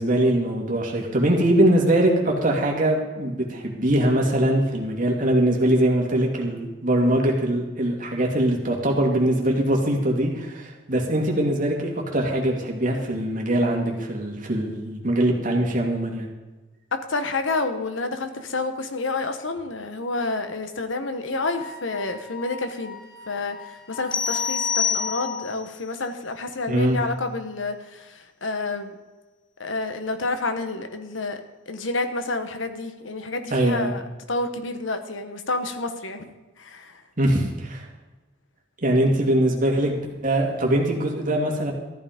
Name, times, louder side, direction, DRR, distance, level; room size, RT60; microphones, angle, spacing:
voice 1, 0.0-16.3 26.7-27.0 33.5-33.9 37.2-37.9 38.8-41.7, right 1 dB, 45° right, 0 dB, 2.5 m, -22 dB
voice 2, 16.9-23.0 23.3-28.9 29.6-31.4 31.7-34.0 34.3-36.2 36.6-37.0, left 3 dB, 80° left, 8 dB, 1.3 m, -29 dB
Wind instrument woodwind instrument, 21.4-25.4, left 6 dB, 50° left, 5.7 m, -37 dB
sound 1, 24.1-25.6, left 7 dB, 25° left, 0.8 m, -26 dB
14.0 x 11.0 x 5.2 m, 1.2 s
head